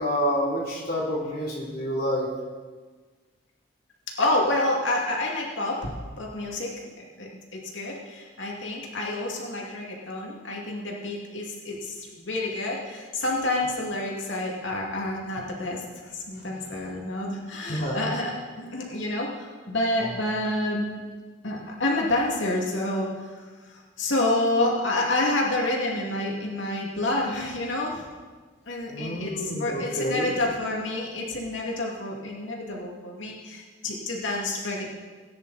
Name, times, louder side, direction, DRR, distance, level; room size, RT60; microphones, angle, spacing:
voice 1, 0.0-2.3 16.4-16.7 17.7-18.0 28.9-30.3, equal, 55° left, -4 dB, 3.4 m, -28 dB
voice 2, 4.2-5.9 6.2-6.7 7.0-20.9 21.4-23.3 23.6-28.1 28.7-34.9, left 2 dB, 85° left, -2 dB, 2.5 m, -28 dB
18.0 x 9.8 x 4.2 m, 1.4 s
head